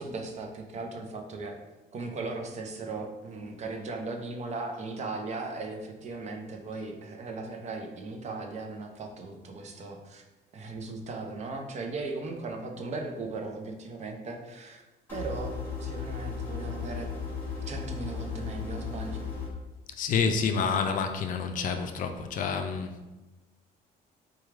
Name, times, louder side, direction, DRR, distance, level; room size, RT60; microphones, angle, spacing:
voice 1, 0.0-1.6 1.9-10.2 10.5-14.8 15.1-17.1 17.7-19.2, right 3 dB, 40° right, 3 dB, 0.6 m, -37 dB
sound 1, 15.1-19.5, left 5 dB, 10° left, 1.4 m, -35 dB
voice 2, 20.0-23.1, left 5 dB, 50° left, 6 dB, 0.4 m, -28 dB
4.6 x 2.3 x 3.2 m, 1.1 s
cardioid pair, 110°, 17 cm